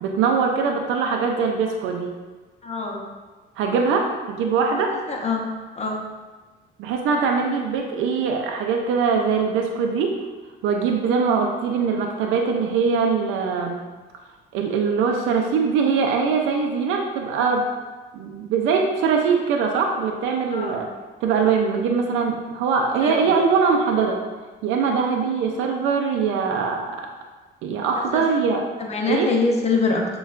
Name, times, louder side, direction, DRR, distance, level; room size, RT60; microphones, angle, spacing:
voice 1, 0.0-2.1 3.6-5.0 6.8-10.3 10.6-13.8 14.5-17.7 18.1-20.9 21.2-24.2 24.6-26.9 27.6-28.6 29.1-29.3, right 5 dB, 80° right, 2 dB, 0.4 m, -22 dB
voice 2, 2.6-3.0 5.1-5.4 5.8-6.0 20.5-20.8 23.0-23.1 28.1-28.2 28.8-30.1, left 4 dB, 35° left, 1 dB, 0.7 m, -24 dB
6.3 x 2.3 x 2.4 m, 1.3 s
cardioid pair, 90°, 20 cm